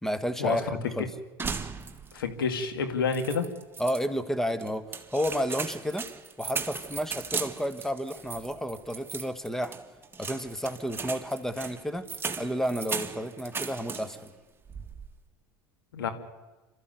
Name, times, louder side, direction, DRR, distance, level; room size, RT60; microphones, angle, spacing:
voice 1, 0.0-1.1 3.8-4.8 5.1-6.1 6.4-9.8 10.2-12.1 12.4-14.3, equal, 5° left, 11 dB, 1.5 m, -31 dB
sound 1, 1.4-2.3 2.6-2.7 3.1-4.0 4.6-14.3 14.6-15.2, right 5 dB, 20° right, 1.8 m, -37 dB
voice 2, 2.1-3.5 15.9-16.1, left 5 dB, 85° left, 7 dB, 2.1 m, -28 dB
27.0 x 13.5 x 9.3 m, 1.2 s
hypercardioid pair, 80°, 11 cm